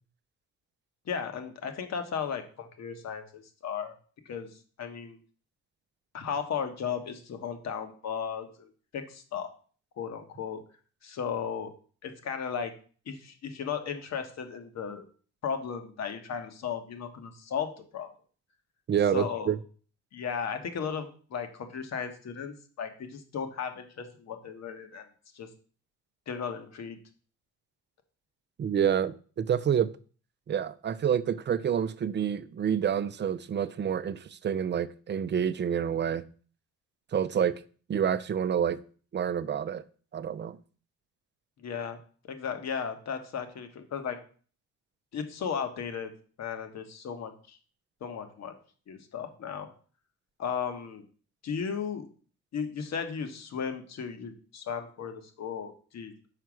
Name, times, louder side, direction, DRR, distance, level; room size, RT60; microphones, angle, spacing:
voice 1, 1.1-4.0 4.2-5.2 6.1-9.5 10.0-10.6 11.0-11.7 12.0-12.7 13.1-15.0 15.4-18.1 19.1-19.5 20.1-25.1 25.3-25.5 26.3-27.0 41.6-42.0 42.2-44.2 45.1-46.1 46.4-47.6 48.0-48.5 48.9-49.7 50.4-51.0 51.4-52.1 52.5-56.1, left 7 dB, 60° left, 1.3 m, -35 dB
voice 2, 18.9-19.6 28.6-29.9 30.5-36.2 37.1-37.6 37.9-38.8 39.1-39.8 40.1-40.6, right 8 dB, 35° right, 0.5 m, -28 dB
5.7 x 4.7 x 6.2 m
cardioid pair, 90°, 30 cm